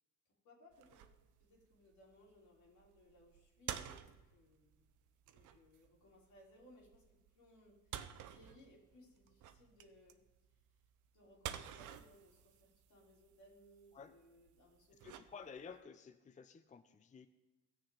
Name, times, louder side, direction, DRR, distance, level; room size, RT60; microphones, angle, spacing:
voice 1, 0.4-1.0 1.4-4.8 5.3-7.1 7.3-10.2 11.1-15.0, equal, 80° left, -3 dB, 3.4 m, -64 dB
sound 1, 0.7-15.8, right 10 dB, 80° right, 0.7 m, -52 dB
voice 2, 15.0-17.3, left 6 dB, 25° left, 10 dB, 0.5 m, -53 dB
16.5 x 6.6 x 3.8 m, 1.1 s
cardioid pair, 90°, 30 cm